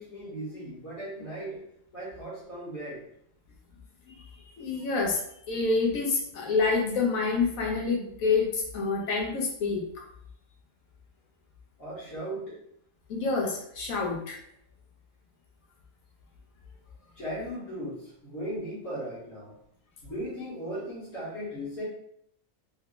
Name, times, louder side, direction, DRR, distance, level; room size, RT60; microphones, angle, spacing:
voice 1, 0.0-1.6 1.9-3.0 11.8-12.6 17.2-19.6 20.0-21.8, equal, 65° left, -10 dB, 1.8 m, -37 dB
voice 2, 4.6-5.2 5.5-10.0 13.1-14.4, left 4 dB, 85° left, 0 dB, 1.3 m, -27 dB
3.4 x 2.3 x 3.7 m, 0.71 s
omnidirectional pair, 1.4 m